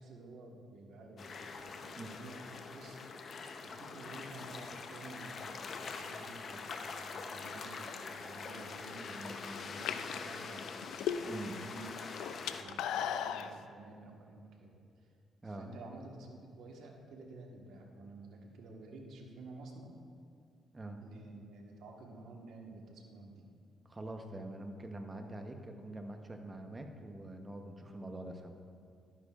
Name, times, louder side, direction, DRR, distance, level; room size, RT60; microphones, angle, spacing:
voice 1, 0.0-3.0 3.6-10.7 11.2-15.1 15.4-20.0 21.0-23.5, right 2 dB, 75° right, 1 dB, 1.3 m, -51 dB
sound 1, 1.2-12.6, left 4 dB, 50° left, 0.7 m, -44 dB
sound 2, 8.9-9.1 9.7-11.5 11.8-13.5, left 9 dB, 85° left, 0.3 m, -36 dB
voice 2, 11.2-11.6 15.4-15.7 20.7-21.0 23.8-28.6, right 1 dB, 20° right, 5 dB, 0.9 m, -44 dB
12.0 x 10.0 x 2.4 m, 2.3 s
cardioid pair, 90°, 0 cm